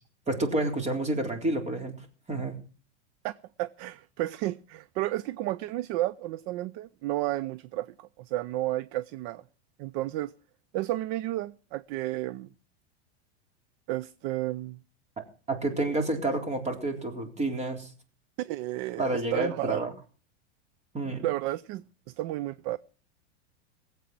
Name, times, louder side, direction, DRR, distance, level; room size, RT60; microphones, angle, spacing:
voice 1, 0.3-2.0 2.3-2.6 15.5-17.9 19.0-19.9 20.9-21.3, right 2 dB, 20° right, 3.8 m, -29 dB
voice 2, 3.6-9.4 9.8-10.3 10.7-12.5 13.9-14.8 18.4-19.9 21.1-22.8, right 16 dB, 45° right, 0.6 m, -32 dB
19.5 x 8.3 x 6.0 m
hypercardioid pair, 115°, 34 cm